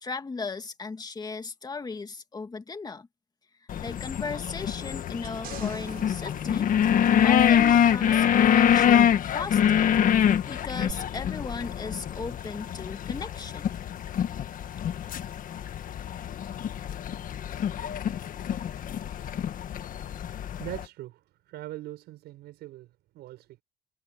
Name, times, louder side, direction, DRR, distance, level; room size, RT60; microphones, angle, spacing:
voice 1, 0.0-3.1 3.8-6.7 7.2-9.9 10.5-13.7, left 4 dB, 25° left, 2.2 m, -37 dB
sound 1, 3.7-20.8, left 9 dB, 55° left, 1.6 m, -25 dB
sound 2, 5.2-7.7 10.9-11.0, right 11 dB, 60° right, 6.1 m, -45 dB
voice 2, 20.5-23.6, right 15 dB, 80° right, 6.0 m, -41 dB
cardioid pair, 110°, 17 cm